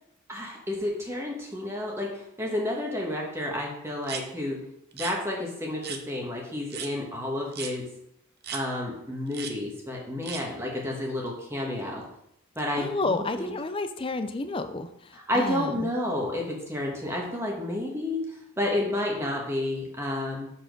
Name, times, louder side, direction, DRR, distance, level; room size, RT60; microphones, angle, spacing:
voice 1, 0.3-4.6 4.9-7.8 8.5-12.0 12.5-13.5 15.1-20.5, left 1 dB, 10° right, -1 dB, 1.3 m, -31 dB
sound 1, 4.0-4.2 4.9-5.1 5.8-6.0 6.7-6.9 7.5-7.7 8.4-8.6 9.3-9.5 10.2-10.4, right 7 dB, 45° right, 0.7 m, -36 dB
voice 2, 12.8-15.9, left 3 dB, 25° left, 9 dB, 0.4 m, -31 dB
6.8 x 4.4 x 5.3 m, 0.77 s
head